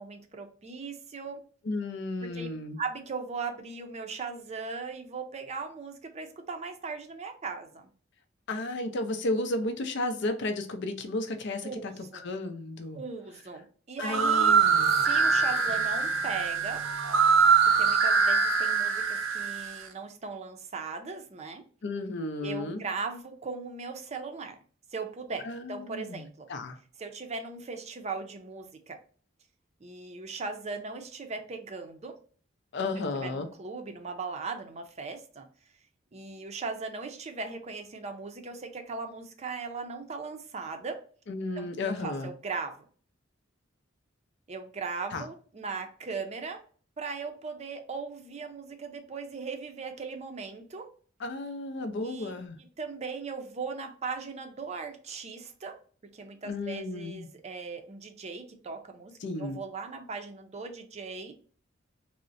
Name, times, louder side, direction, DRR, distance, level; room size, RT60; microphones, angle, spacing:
voice 1, 0.0-1.4 2.2-2.5 2.8-7.9 11.6-12.2 12.9-14.5 14.9-16.8 17.6-21.6 22.4-24.6 24.9-26.5 27.0-29.0 29.8-32.2 33.2-35.5 36.1-41.0 41.6-42.8 44.5-46.6 47.0-50.9 52.0-52.3 52.8-55.7 56.1-59.1 59.4-61.3, right 4 dB, 35° right, 0.5 m, -38 dB
voice 2, 1.6-2.8 8.5-11.9 12.2-13.0 14.0-15.0 21.8-22.8 25.4-26.8 32.7-33.5 41.3-42.3 45.1-45.3 51.2-52.6 56.4-57.3 59.2-59.6, left 2 dB, 60° left, 0.5 m, -33 dB
sound 1, 14.0-19.8, right 5 dB, 85° right, 0.5 m, -24 dB
3.7 x 2.1 x 2.5 m
head